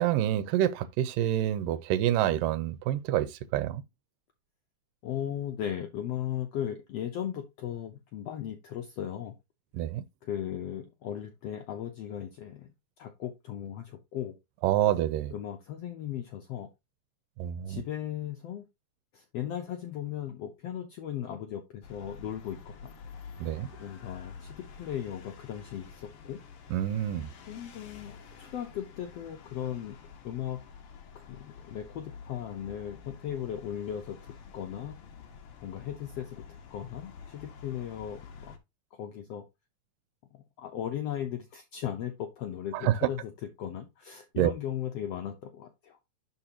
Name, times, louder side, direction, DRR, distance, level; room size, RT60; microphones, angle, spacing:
voice 1, 0.0-3.8 9.7-10.0 14.6-15.3 17.4-17.8 23.4-23.7 26.7-27.3 42.8-43.0 44.4-44.5, right 12 dB, 85° right, 2.3 m, -27 dB
voice 2, 5.0-9.3 10.2-12.7 13.0-14.3 15.3-16.7 17.7-18.7 19.1-22.9 23.8-26.4 27.5-30.0 30.2-30.6 31.1-35.0 35.6-36.4 36.7-38.5 38.9-39.4 40.3-46.0, left 10 dB, 75° left, 1.4 m, -37 dB
sound 1, 21.8-38.6, left 6 dB, 60° left, 1.6 m, -49 dB
11.0 x 4.6 x 2.9 m
omnidirectional pair, 3.9 m